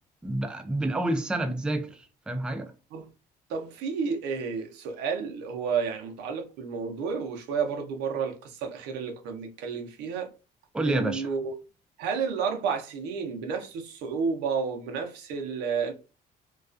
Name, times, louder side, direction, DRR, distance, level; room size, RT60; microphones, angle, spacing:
voice 1, 0.2-2.7 10.7-11.3, right 1 dB, 5° right, 0.3 m, -29 dB
voice 2, 3.5-10.3 10.9-11.5 12.0-15.9, right 5 dB, 90° right, 0.6 m, -31 dB
2.3 x 2.2 x 2.4 m
cardioid pair, 110°, 17 cm